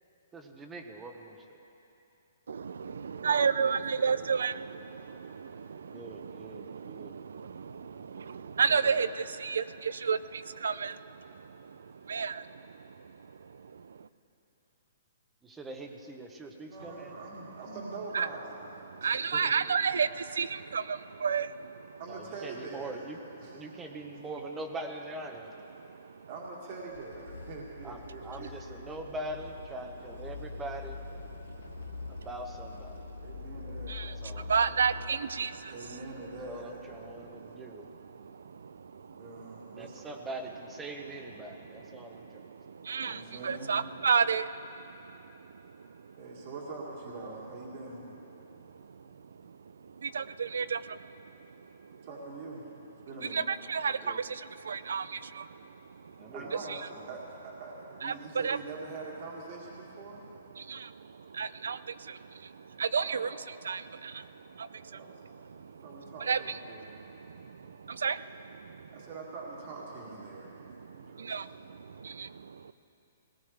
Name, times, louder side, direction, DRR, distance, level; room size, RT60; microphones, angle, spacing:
voice 1, 0.3-1.4 5.9-7.1 15.4-17.2 22.1-23.2 23.5-25.5 27.8-31.0 32.1-33.0 34.2-34.5 36.5-37.9 39.7-42.4 54.0-54.2 56.2-57.1, right 2 dB, 10° right, 4 dB, 0.9 m, -42 dB
voice 2, 2.5-14.1 18.1-18.3 18.9-22.0 25.8-26.2 31.3-32.3 32.9-33.5 33.9-35.8 37.1-39.8 41.4-45.5 45.9-46.1 48.5-48.6 48.9-49.0 49.4-49.6 49.8-51.3 51.5-52.0 53.3-56.3 56.7-56.8 58.0-58.6 60.5-63.4 63.6-65.8 66.2-68.9 70.4-72.7, right 6 dB, 85° right, 15 dB, 0.5 m, -33 dB
voice 3, 8.5-9.0 16.6-18.7 19.0-19.5 22.0-23.1 23.4-23.6 24.1-24.2 26.3-28.5 33.2-34.0 35.7-36.7 39.2-40.0 42.9-43.8 46.2-48.0 52.0-52.6 53.0-53.4 56.3-60.2 61.0-61.1 63.0-63.2 64.8-65.1 65.8-67.0 68.9-70.6 70.9-71.3, right 3 dB, 35° right, -3 dB, 2.0 m, -43 dB
sound 1, 26.7-37.5, left 4 dB, 75° left, 0.8 m, -45 dB
20.0 x 18.5 x 3.4 m, 3.0 s
hypercardioid pair, 170°, 0 cm